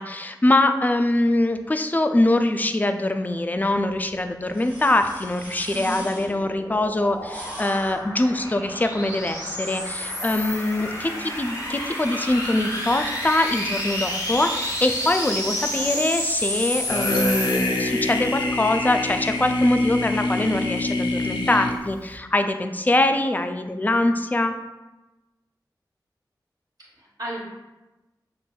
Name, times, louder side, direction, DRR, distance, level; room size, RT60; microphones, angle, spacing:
voice 1, 0.0-24.5, left 2 dB, 20° left, 7 dB, 0.3 m, -23 dB
sound 1, 3.5-21.6, right 1 dB, 20° right, 1.3 m, -46 dB
voice 2, 5.7-6.1 15.6-16.0 26.8-27.4, right 1 dB, 55° right, -7 dB, 1.1 m, -35 dB
sound 2, 6.0-18.4, left 1 dB, 55° left, 1.2 m, -30 dB
sound 3, 16.9-22.2, left 2 dB, 85° left, 0.4 m, -25 dB
6.0 x 2.5 x 2.3 m, 1.1 s
wide cardioid pair, 50°, 8 cm